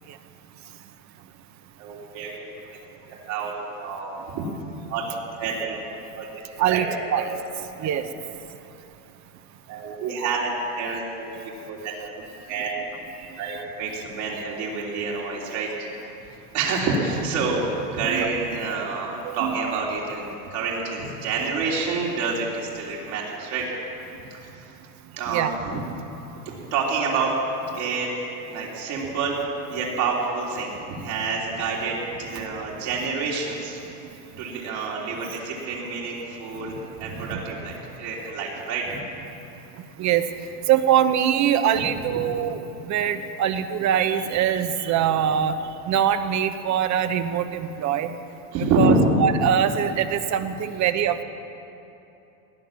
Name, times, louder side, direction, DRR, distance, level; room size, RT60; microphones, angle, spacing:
voice 1, 1.8-2.5 3.3-4.4 4.9-5.8 6.1-6.3 6.6-6.8 7.1-7.2 7.8-7.9 9.7-11.3 11.7-11.9 12.5-12.7 13.4-15.9 16.5-23.7 24.3-24.7 25.1-25.8 26.5-27.3 27.7-29.4 29.7-33.8 34.3-39.0 42.1-42.2 48.5-49.1, right 4 dB, 60° right, -4 dB, 3.6 m, -28 dB
voice 2, 40.7-45.6 45.9-48.1 48.8-48.9 49.2-51.2, right 9 dB, 40° right, 10 dB, 1.0 m, -23 dB
18.5 x 10.0 x 7.5 m, 2.9 s
supercardioid pair, 120°, 46 cm